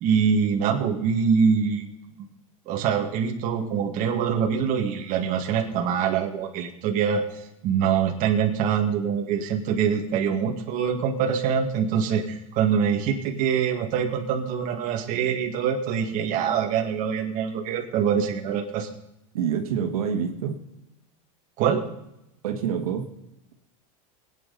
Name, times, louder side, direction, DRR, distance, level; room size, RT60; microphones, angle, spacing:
voice 1, 0.0-1.9 2.7-18.9 21.6-21.9, right 7 dB, 45° right, 2 dB, 2.1 m, -24 dB
voice 2, 19.3-20.6 22.4-23.1, right 7 dB, 85° right, 4 dB, 1.9 m, -26 dB
21.0 x 9.1 x 4.1 m, 0.86 s
supercardioid pair, 130°, 18 cm